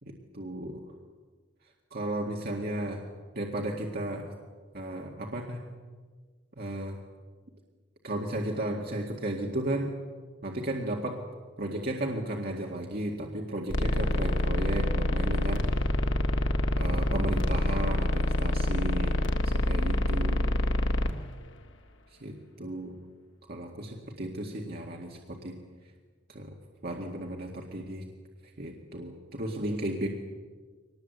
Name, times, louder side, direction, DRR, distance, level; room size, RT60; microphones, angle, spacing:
voice 1, 0.0-0.9 1.9-3.0 3.3-4.3 4.7-5.6 6.6-7.0 8.0-9.9 10.4-11.2 11.6-15.7 16.7-19.2 19.4-20.5 22.1-23.0 23.5-25.5 26.3-26.5 26.8-28.1 28.6-30.1, right 1 dB, 55° right, 0 dB, 2.1 m, -34 dB
sound 1, 13.7-21.1, left 1 dB, 80° left, 1.7 m, -26 dB
23.0 x 20.0 x 8.1 m, 1.5 s
head